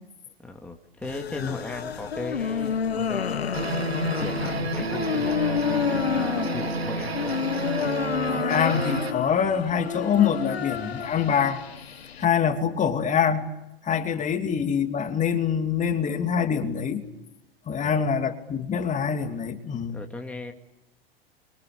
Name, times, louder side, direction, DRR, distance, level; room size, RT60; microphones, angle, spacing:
voice 1, 0.4-3.8 4.2-7.4 14.2-14.3 17.8-18.0 19.9-20.5, left 2 dB, 5° left, 3 dB, 2.2 m, -38 dB
sound 1, 1.0-12.2, left 7 dB, 85° left, 1.0 m, -29 dB
sound 2, 3.5-9.1, right 3 dB, 90° right, 1.7 m, -30 dB
voice 2, 8.3-11.6 12.2-13.5 13.8-17.0 17.7-20.0, left 7 dB, 25° left, 7 dB, 2.7 m, -25 dB
27.5 x 26.0 x 7.0 m, 0.92 s
hypercardioid pair, 95°, 30 cm